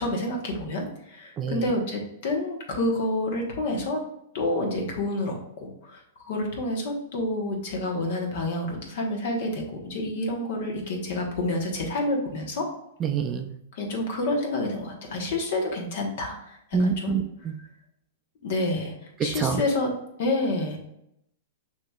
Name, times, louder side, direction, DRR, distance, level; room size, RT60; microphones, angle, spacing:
voice 1, 0.0-4.0 4.3-12.7 13.7-17.1 18.4-18.9 19.2-19.9 20.2-20.8, left 2 dB, 60° left, 1 dB, 1.2 m, -28 dB
voice 2, 1.4-1.7 13.0-13.6 16.7-17.6 19.2-19.6, right 6 dB, 20° right, 5 dB, 0.4 m, -26 dB
6.2 x 2.9 x 2.4 m, 0.78 s
hypercardioid pair, 150°, 0 cm